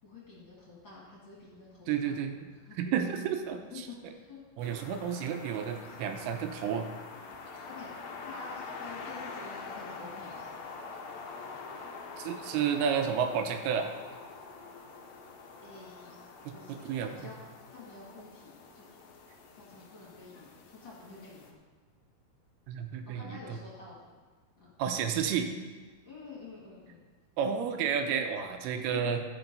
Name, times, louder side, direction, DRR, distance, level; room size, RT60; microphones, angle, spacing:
voice 1, 0.0-2.2 2.7-2.8 3.7-4.4 7.7-10.4 15.6-16.1 16.5-17.4 17.7-18.9 19.6-21.6 23.1-24.1 24.6-24.7 26.0-27.0 28.0-28.3 28.9-29.1, left 4 dB, 35° left, -6 dB, 2.2 m, -48 dB
voice 2, 1.9-2.5 2.8-3.6 4.6-6.9 12.2-13.9 16.4-17.1 22.7-23.6 24.8-25.5 27.4-29.2, right 7 dB, 85° right, 6 dB, 2.7 m, -31 dB
sound 1, 4.6-21.5, left 4 dB, 75° left, 1.6 m, -45 dB
14.0 x 5.4 x 5.3 m, 1.4 s
omnidirectional pair, 4.6 m